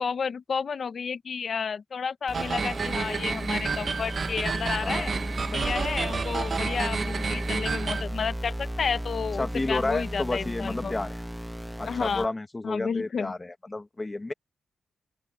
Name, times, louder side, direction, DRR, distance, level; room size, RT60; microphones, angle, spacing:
voice 1, 0.0-5.1 5.5-10.9 11.8-12.3 12.6-13.3, left 6 dB, 45° left, 1.0 m, -31 dB
sound 1, 2.3-12.3, equal, ahead, 1.0 m, -34 dB
sound 2, 2.3-8.0, right 5 dB, 40° right, 1.1 m, -30 dB
voice 2, 4.8-5.2 9.4-11.2 11.8-14.3, left 2 dB, 15° left, 1.4 m, -31 dB
wide cardioid pair, 140°, 0 cm